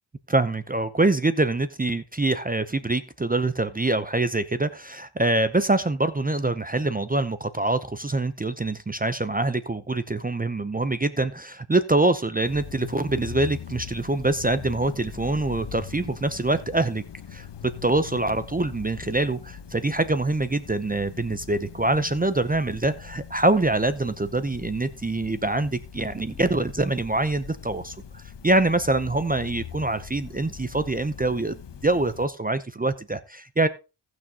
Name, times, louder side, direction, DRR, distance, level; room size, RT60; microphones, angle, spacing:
voice 1, 0.3-17.0 17.3-33.7, right 2 dB, 20° right, 0.7 m, -25 dB
sound 1, 12.4-32.3, left 8 dB, 60° left, 1.1 m, -41 dB
17.5 x 6.2 x 2.9 m
cardioid pair, 70°, 47 cm